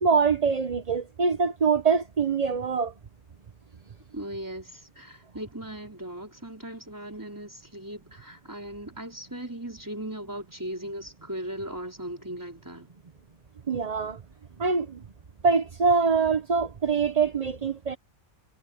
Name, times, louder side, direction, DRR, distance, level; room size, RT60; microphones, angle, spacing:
voice 1, 0.0-2.9 13.7-14.2 14.6-15.0 15.4-18.0, right 5 dB, 30° right, 0.9 m, -24 dB
voice 2, 4.1-12.9, right 1 dB, 15° right, 4.0 m, -38 dB
omnidirectional pair, 1.5 m